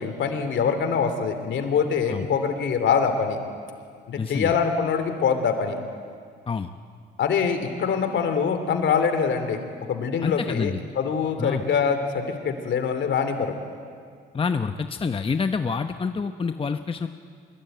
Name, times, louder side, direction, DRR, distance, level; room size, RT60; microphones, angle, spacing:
voice 1, 0.0-3.4 4.1-5.8 7.2-9.6 9.9-13.5, left 6 dB, 70° left, 7 dB, 3.1 m, -24 dB
voice 2, 4.2-4.5 6.5-6.7 10.2-10.8 11.4-11.6 14.3-17.1, left 5 dB, 25° left, 8 dB, 0.9 m, -27 dB
24.5 x 22.0 x 9.2 m, 2.1 s
cardioid pair, 90°, 20 cm